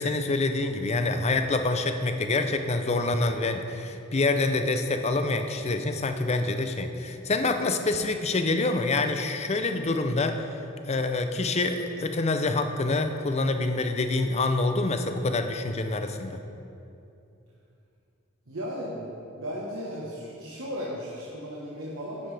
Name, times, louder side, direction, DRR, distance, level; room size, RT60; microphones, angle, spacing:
voice 1, 0.0-10.5 10.9-16.4, left 2 dB, 30° left, 7 dB, 0.5 m, -26 dB
voice 2, 18.5-19.1 19.4-22.3, equal, 70° right, -5 dB, 1.3 m, -35 dB
9.9 x 9.6 x 3.4 m, 2.7 s
head